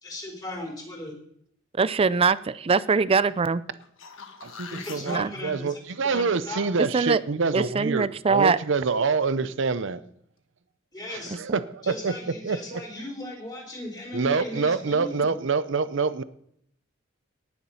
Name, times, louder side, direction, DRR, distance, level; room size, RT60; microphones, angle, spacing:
voice 1, 0.0-1.1 4.6-6.7 10.9-11.4 11.8-15.3, left 1 dB, 20° left, 0 dB, 3.9 m, -37 dB
voice 2, 1.8-3.6 5.1-5.3 6.8-7.2 7.5-8.6, right 5 dB, 30° right, 17 dB, 0.4 m, -22 dB
sound 1, 3.7-5.2 10.0-10.1, left 6 dB, 75° left, 1.3 m, -42 dB
voice 3, 4.4-10.0 11.1-12.1 12.4-12.8 14.1-16.2, right 4 dB, 65° right, 14 dB, 0.7 m, -26 dB
18.5 x 7.2 x 5.6 m, 0.69 s
head